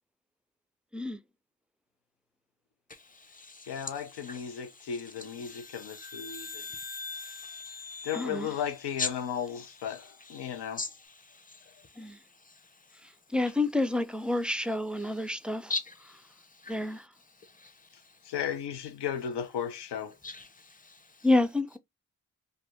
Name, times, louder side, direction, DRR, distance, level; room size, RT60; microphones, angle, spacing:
voice 1, 2.9-8.1 8.5-8.6 9.0-9.1 9.5-12.2 12.4-12.7 15.0-15.3 15.7-16.8 17.4-18.1 20.2-21.3, left 3 dB, 20° left, 0.8 m, -42 dB
voice 2, 3.7-6.6 8.0-10.8 18.3-20.1, left 8 dB, 75° left, 0.7 m, -35 dB
sound 1, 5.2-9.8, left 4 dB, 55° left, 1.2 m, -44 dB
voice 3, 8.1-8.6 12.0-12.2 13.3-15.7 16.7-17.0 21.2-21.8, left 2 dB, ahead, 0.4 m, -28 dB
2.7 x 2.1 x 3.3 m
supercardioid pair, 45°, 42 cm